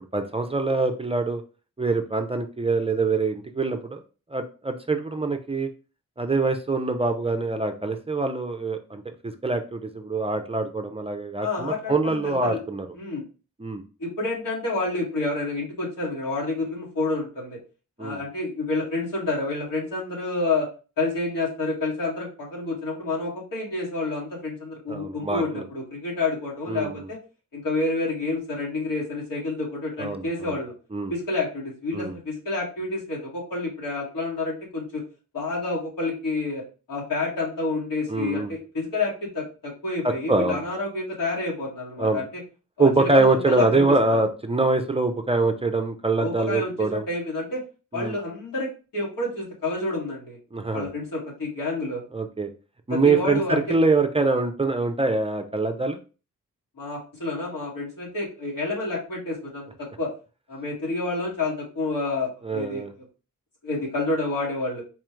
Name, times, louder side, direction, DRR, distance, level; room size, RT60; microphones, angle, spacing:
voice 1, 0.1-1.4 1.8-4.0 4.3-5.7 6.2-12.9 13.6-13.8 18.0-18.2 24.9-25.6 26.7-27.1 30.0-30.6 30.9-31.1 31.9-32.1 38.1-38.5 40.0-40.6 42.0-42.2 42.8-47.1 47.9-48.2 50.5-50.9 52.1-52.5 52.9-56.0 62.4-62.9, right 3 dB, 20° right, 6 dB, 0.4 m, -24 dB
voice 2, 11.4-12.6 12.9-13.2 14.0-17.6 18.0-20.7 21.0-27.2 27.5-30.7 31.1-35.0 35.3-36.6 36.9-42.4 42.8-44.2 46.2-47.6 47.9-50.4 50.7-52.0 52.9-53.8 56.8-60.1 60.5-62.8 63.6-64.8, left 2 dB, 80° left, -4 dB, 1.8 m, -29 dB
4.2 x 2.3 x 3.0 m, 0.34 s
cardioid pair, 80°, 33 cm